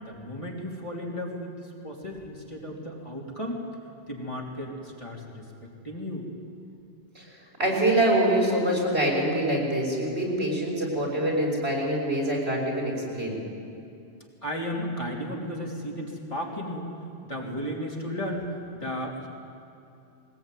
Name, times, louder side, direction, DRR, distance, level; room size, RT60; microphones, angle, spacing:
voice 1, 0.0-3.6 4.1-5.4 5.8-6.3 14.4-16.9 17.3-18.5 18.7-19.3, equal, 30° left, -2 dB, 3.5 m, -34 dB
voice 2, 7.6-13.4, right 1 dB, 70° right, -2 dB, 5.9 m, -25 dB
22.0 x 19.5 x 9.4 m, 2.6 s
omnidirectional pair, 1.1 m